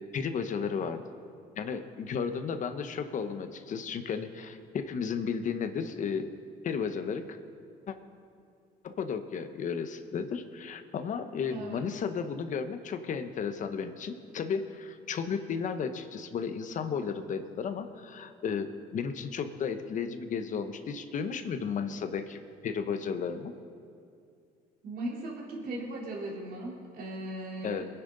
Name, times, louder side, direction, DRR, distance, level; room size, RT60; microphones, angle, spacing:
voice 1, 0.1-1.0 1.6-6.3 6.6-7.4 7.9-8.0 8.8-23.5 27.6-27.9, left 6 dB, 50° left, 9 dB, 1.0 m, -34 dB
voice 2, 11.5-11.8 24.8-27.8, right 1 dB, 60° right, -3 dB, 3.6 m, -38 dB
21.5 x 10.0 x 4.0 m, 2.4 s
cardioid pair, 110°, 17 cm